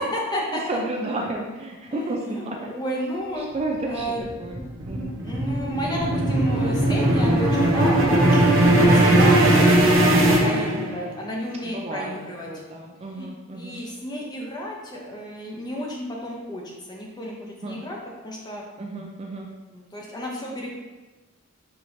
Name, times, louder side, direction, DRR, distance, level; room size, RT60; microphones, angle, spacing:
voice 1, 0.0-0.6 1.9-2.0 2.4-3.5 3.9-4.3 5.2-8.5 8.8-12.5 13.1-18.0 18.2-18.6 19.7-20.7, equal, 20° left, -2 dB, 0.6 m, -31 dB
voice 2, 0.5-2.7 3.4-4.1 4.4-4.6 4.9-5.2 11.6-12.2 12.5-13.8 17.6-17.8 18.8-19.5, right 2 dB, 30° right, 0 dB, 0.3 m, -32 dB
sound 1, 3.9-11.2, right 1 dB, 70° right, 0.7 m, -19 dB
5.7 x 3.0 x 2.6 m, 1.2 s
head